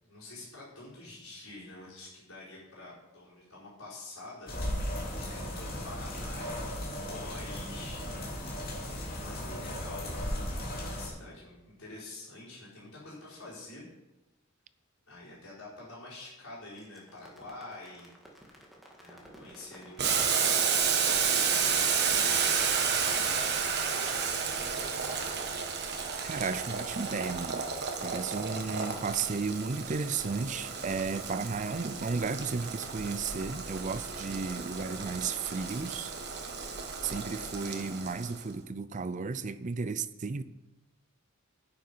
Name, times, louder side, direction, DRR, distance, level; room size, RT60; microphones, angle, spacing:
voice 1, 0.0-8.1 8.8-13.9 15.1-18.1 19.0-20.4 20.6-22.3 23.0-24.1, left 2 dB, 75° left, 4.9 m, -47 dB
sound 1, 4.5-11.1, equal, 40° left, 3.3 m, -36 dB
sound 2, 16.8-23.3, equal, ahead, 1.8 m, -51 dB
Boiling, 20.0-38.4, right 6 dB, 50° right, 1.3 m, -31 dB
voice 2, 26.2-27.7 28.0-36.1 37.0-40.4, right 4 dB, 35° right, 0.4 m, -34 dB
9.8 x 9.1 x 5.5 m
head